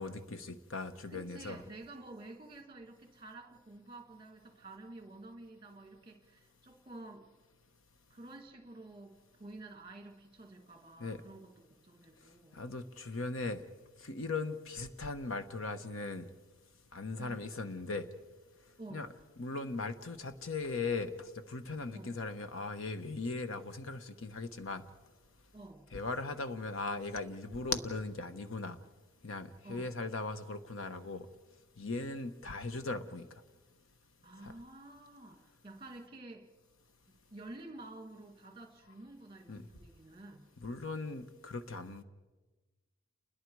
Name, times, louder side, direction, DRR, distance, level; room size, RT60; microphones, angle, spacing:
voice 1, 0.0-1.6 11.0-11.2 12.5-13.6 14.0-16.3 16.9-18.1 18.9-19.1 19.4-24.8 25.9-28.8 29.2-31.3 31.8-33.3 34.4-34.5 39.5-39.7 40.6-42.0, left 3 dB, 70° left, 10 dB, 1.2 m, -38 dB
voice 2, 1.1-7.3 8.1-12.6 17.2-17.4 18.8-19.1 21.9-22.2 25.5-25.9 29.6-29.9 34.2-36.5 37.3-40.5, right 2 dB, 25° right, 5 dB, 2.3 m, -50 dB
29.5 x 21.0 x 4.8 m, 1.2 s
head